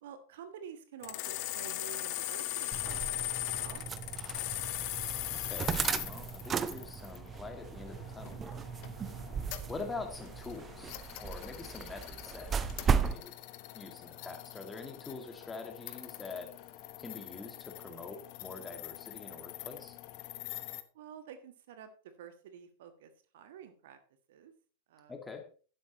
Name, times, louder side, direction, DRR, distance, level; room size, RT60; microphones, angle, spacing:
voice 1, 0.0-3.3 3.6-4.5 9.5-9.7 20.9-21.9 22.2-24.0 24.3-24.5 24.9-25.1, right 8 dB, 55° right, 9 dB, 1.4 m, -50 dB
sound 1, 1.0-20.8, left 15 dB, 45° left, 0.9 m, -41 dB
sound 2, 2.7-13.2, right 6 dB, 20° right, 0.6 m, -36 dB
voice 2, 5.3-5.8 6.0-8.6 9.7-12.5 12.9-13.3 13.7-16.5 17.0-20.0 25.1-25.5, left 4 dB, 15° left, 5 dB, 2.2 m, -45 dB
12.0 x 11.0 x 3.1 m, 0.38 s
figure-of-eight pair, 90°, 0 cm